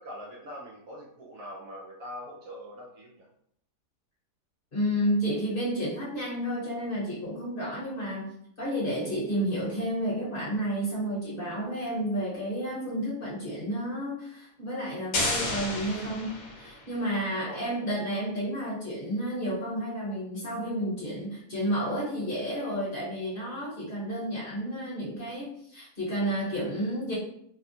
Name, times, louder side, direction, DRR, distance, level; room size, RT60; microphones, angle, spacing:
voice 1, 0.0-3.3 17.1-17.6, equal, 65° right, -3 dB, 1.0 m, -43 dB
voice 2, 4.7-27.1, equal, 35° left, -6 dB, 1.2 m, -31 dB
sound 1, 15.1-17.0, left 2 dB, 60° left, 0.9 m, -31 dB
3.5 x 2.2 x 2.7 m, 0.69 s
omnidirectional pair, 1.8 m